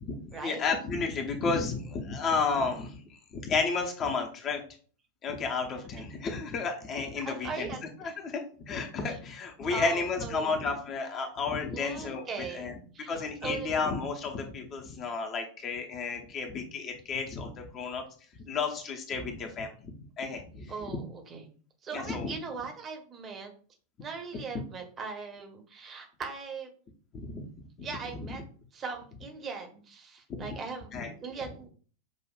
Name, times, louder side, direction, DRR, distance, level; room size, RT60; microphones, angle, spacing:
voice 1, 0.0-3.0 3.3-4.6 5.2-7.7 8.0-12.7 13.1-18.0 18.4-21.0 21.9-22.3 27.1-27.5 27.8-27.9 28.1-28.3 30.3-30.6 30.9-31.1, left 4 dB, 30° left, 3 dB, 0.8 m, -32 dB
voice 2, 7.2-8.2 9.7-10.6 11.7-12.7 12.9-13.1 13.4-13.7 20.7-21.4 21.8-23.5 24.0-26.7 27.8-28.4 28.7-30.9 31.2-31.7, right 4 dB, 25° right, 4 dB, 1.0 m, -39 dB
6.3 x 2.5 x 2.4 m, 0.42 s
figure-of-eight pair, 90°, 0 cm